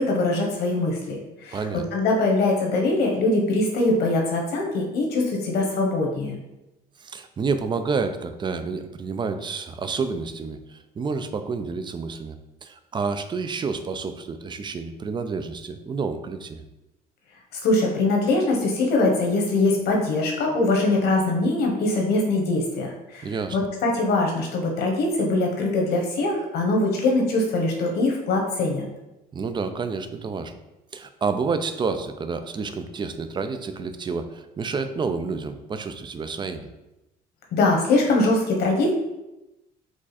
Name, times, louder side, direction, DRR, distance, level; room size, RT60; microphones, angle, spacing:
voice 1, 0.0-1.6 1.9-6.3 17.5-28.9 37.5-38.9, left 2 dB, 75° left, 0 dB, 1.2 m, -22 dB
voice 2, 1.5-1.8 7.0-16.6 23.2-23.6 29.3-30.5 30.9-36.7, right 4 dB, 25° right, 9 dB, 0.4 m, -29 dB
4.8 x 2.4 x 4.1 m, 0.96 s
cardioid pair, 110°, 17 cm